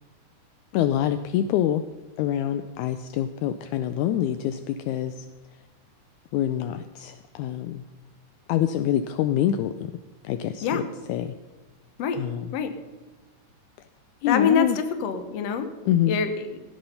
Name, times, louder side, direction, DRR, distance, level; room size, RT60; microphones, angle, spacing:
voice 1, 0.7-1.8 2.2-5.1 6.3-7.8 8.5-9.9 10.2-10.8 11.1-11.3 12.2-12.5 14.2-14.8 15.9-16.2, left 11 dB, 80° left, 10 dB, 1.9 m, -25 dB
voice 2, 14.3-15.7 16.1-16.6, left 6 dB, 65° left, 9 dB, 2.0 m, -25 dB
17.5 x 8.7 x 5.6 m, 1.2 s
omnidirectional pair, 3.6 m